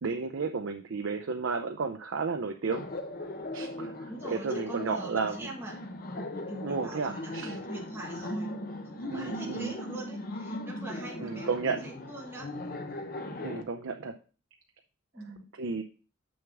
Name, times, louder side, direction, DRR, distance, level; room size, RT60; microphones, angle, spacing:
voice 1, 0.0-2.9 3.5-5.5 6.6-7.6 9.1-9.7 11.2-11.8 13.4-14.1 15.6-15.8, right 4 dB, 70° right, 5 dB, 0.5 m, -32 dB
Laughter, 2.7-13.6, left 1 dB, 45° left, 0.8 m, -38 dB
voice 2, 4.1-5.8 6.5-8.5 8.8-12.5 15.1-15.5, right 1 dB, 10° right, -3 dB, 1.4 m, -42 dB
7.2 x 6.3 x 3.4 m, 0.36 s
head